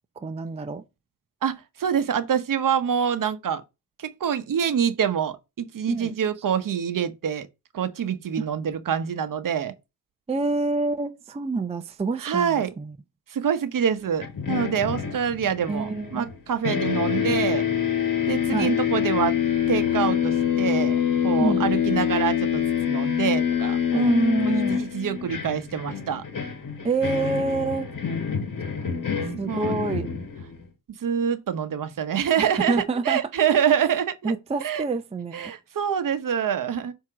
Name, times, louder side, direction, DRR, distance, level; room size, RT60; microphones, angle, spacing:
voice 1, 0.2-0.8 5.9-6.1 8.4-8.5 10.3-12.9 15.7-16.3 18.5-18.7 21.4-21.6 23.9-24.8 26.8-27.9 29.4-30.1 32.4-33.2 34.2-35.5, right 3 dB, 15° right, 0.5 m, -26 dB
voice 2, 1.4-3.6 4.0-7.5 7.7-9.7 12.2-12.7 13.3-17.6 18.3-19.3 19.7-24.1 24.4-26.2 29.5-29.7 31.0-34.3 34.6-34.8 35.3-36.9, right 8 dB, 50° right, 0.9 m, -26 dB
sound 1, 14.2-16.4 16.6-30.6, left 8 dB, 50° left, 1.5 m, -26 dB
7.4 x 2.9 x 4.9 m
cardioid pair, 75°, 40 cm